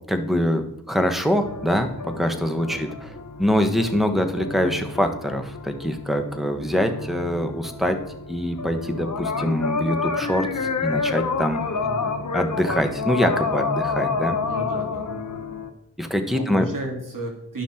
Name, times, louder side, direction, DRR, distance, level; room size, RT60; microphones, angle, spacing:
voice 1, 0.1-3.1 3.4-8.0 8.3-11.6 12.3-14.4 16.0-16.7, equal, ahead, 6 dB, 1.3 m, -24 dB
sound 1, 1.4-15.7, left 4 dB, 55° left, 1.0 m, -29 dB
voice 2, 11.6-12.2 14.5-15.1 16.3-17.6, right 1 dB, 65° right, 1 dB, 2.4 m, -33 dB
11.5 x 5.8 x 4.4 m, 0.78 s
cardioid pair, 45°, 34 cm